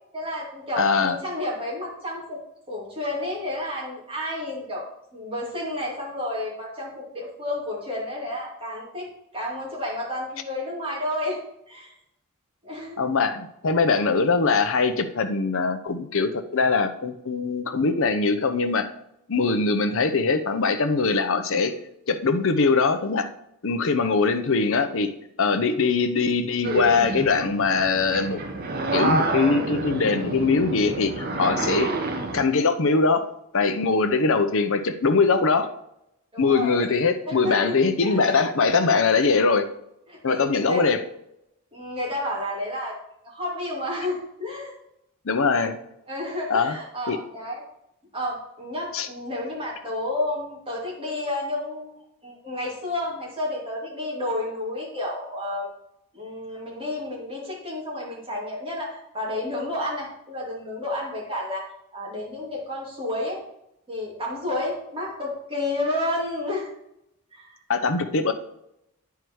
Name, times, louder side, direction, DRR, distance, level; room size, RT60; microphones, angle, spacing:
voice 1, 0.1-2.4 2.7-4.8 5.1-9.1 9.3-11.4 11.7-11.9 12.6-13.0 24.0-24.1 36.3-36.9 37.3-38.5 40.1-40.8 41.7-43.0 43.2-44.7 45.5-45.7 46.1-47.6 48.1-55.7 56.1-61.7 61.9-63.4 63.9-66.7 67.3-67.6, left 1 dB, 25° right, -4 dB, 2.8 m, -31 dB
voice 2, 0.8-1.2 13.0-18.9 19.3-21.7 22.1-23.3 23.6-25.1 25.4-28.4 28.9-31.9 32.3-33.3 33.5-35.7 36.4-39.7 40.2-41.0 45.2-45.8 46.5-46.8 47.1-47.2 48.9-49.1 67.7-68.3, left 4 dB, 60° left, 8 dB, 0.7 m, -22 dB
sound 1, 26.6-32.4, right 2 dB, 45° right, 1.0 m, -28 dB
9.6 x 4.7 x 4.7 m, 0.81 s
head